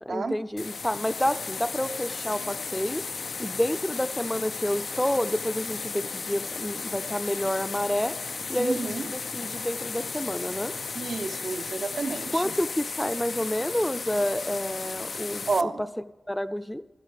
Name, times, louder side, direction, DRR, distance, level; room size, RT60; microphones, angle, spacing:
voice 1, 0.0-3.0 3.4-8.1 8.5-10.7 12.3-15.9 16.3-16.8, equal, 5° left, 12 dB, 0.5 m, -29 dB
sound 1, 0.6-15.6, left 4 dB, 70° left, 0.3 m, -35 dB
voice 2, 8.6-9.0 10.9-12.4 15.5-15.8, right 4 dB, 75° right, 5 dB, 0.8 m, -30 dB
12.5 x 12.5 x 4.9 m, 1.1 s
wide cardioid pair, 80°, 0 cm